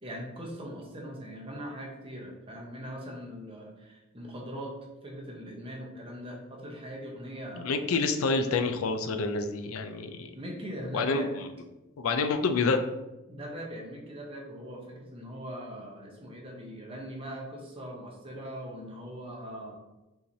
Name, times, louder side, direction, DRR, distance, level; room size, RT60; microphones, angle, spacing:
voice 1, 0.0-4.7 5.0-7.7 10.3-11.3 13.3-19.8, equal, 25° right, -1 dB, 0.9 m, -41 dB
voice 2, 7.6-10.3 10.9-11.5 12.0-12.8, left 4 dB, 90° left, 7 dB, 0.4 m, -28 dB
5.4 x 3.1 x 2.7 m, 1.0 s
head